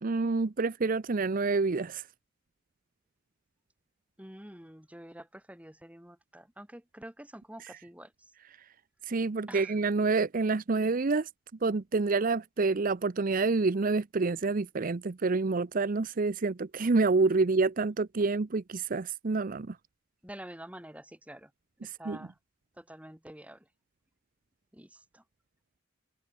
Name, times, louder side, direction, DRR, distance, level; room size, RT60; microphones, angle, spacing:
voice 1, 0.0-2.0 9.1-11.3 11.6-19.8 21.8-22.2, right 3 dB, 45° right, 0.6 m, -28 dB
voice 2, 4.2-8.1 9.5-9.8 20.2-21.5 21.8-22.4 22.8-23.7 24.7-25.2, right 1 dB, 5° right, 2.2 m, -47 dB
head